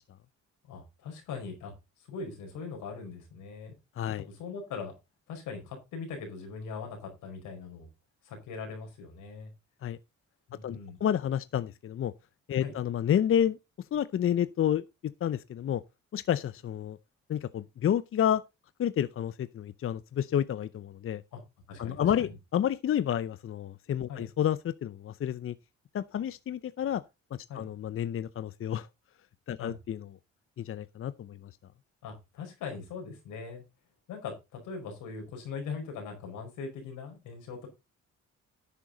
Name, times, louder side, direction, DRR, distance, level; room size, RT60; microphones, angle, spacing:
voice 1, 0.6-3.7 4.2-4.9 5.3-7.9 8.2-9.5 10.5-11.0 12.6-12.7 21.3-21.4 21.7-22.3 24.1-24.2 27.5-27.7 29.6-29.8 32.0-33.6 34.1-37.7, left 5 dB, 90° left, 5.0 m, -41 dB
voice 2, 10.6-12.1 12.5-13.6 13.9-14.8 15.2-15.8 16.1-17.0 17.3-18.4 18.8-21.2 21.8-25.5 25.9-27.0 27.5-28.9 29.5-30.0 30.6-31.4, left 10 dB, 45° left, 0.6 m, -30 dB
11.0 x 8.4 x 3.9 m
cardioid pair, 90°, 30 cm